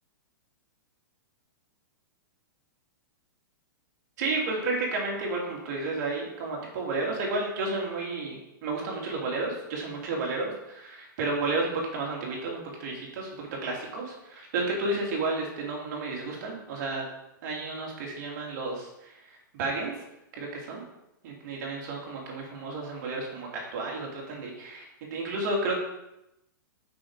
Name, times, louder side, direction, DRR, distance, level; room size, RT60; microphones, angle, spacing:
voice 1, 4.2-17.0 17.4-19.1 19.5-20.0 20.4-20.8 21.2-25.8, right 3 dB, 55° right, -1 dB, 2.9 m, -32 dB
6.2 x 5.8 x 4.8 m, 0.88 s
hypercardioid pair, 140°, 11 cm